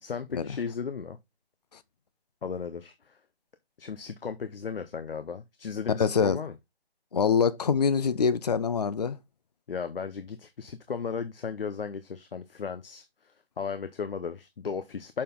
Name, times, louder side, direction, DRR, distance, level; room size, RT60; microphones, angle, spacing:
voice 1, 0.0-1.2 2.4-3.1 3.8-6.5 9.7-13.0 13.6-15.2, left 6 dB, 60° left, 0.9 m, -35 dB
voice 2, 6.0-6.4 7.1-9.2, left 6 dB, 40° left, 0.5 m, -24 dB
6.6 x 5.7 x 3.7 m
figure-of-eight pair, 160°, 31 cm